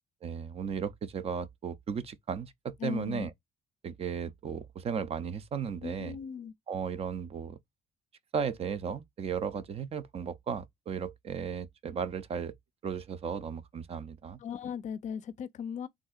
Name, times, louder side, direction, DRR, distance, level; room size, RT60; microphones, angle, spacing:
voice 1, 0.2-3.3 3.8-6.2 6.7-7.6 8.3-12.5 12.8-14.4, right 6 dB, 35° right, 0.5 m, -35 dB
voice 2, 2.8-3.3 5.8-6.5 14.4-15.9, left 7 dB, 45° left, 0.4 m, -37 dB
3.6 x 2.6 x 2.3 m
cardioid pair, 110°, 17 cm